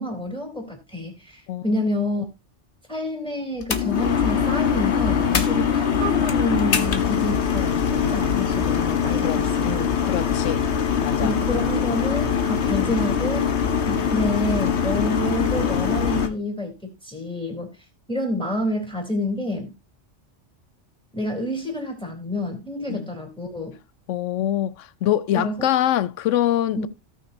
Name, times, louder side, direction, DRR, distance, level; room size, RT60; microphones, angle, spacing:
voice 1, 0.0-2.2 2.9-9.9 11.2-13.5 13.8-17.7 18.1-19.7 21.1-23.8 25.3-25.7 26.8-26.9, left 1 dB, 5° left, 3.6 m, -28 dB
voice 2, 1.5-1.8 9.2-9.4 10.0-10.6 11.0-11.3 22.9-23.1 24.1-26.9, left 12 dB, 85° left, 1.0 m, -24 dB
sound 1, 3.6-16.3, left 7 dB, 65° left, 1.4 m, -22 dB
17.5 x 6.0 x 2.7 m
omnidirectional pair, 1.2 m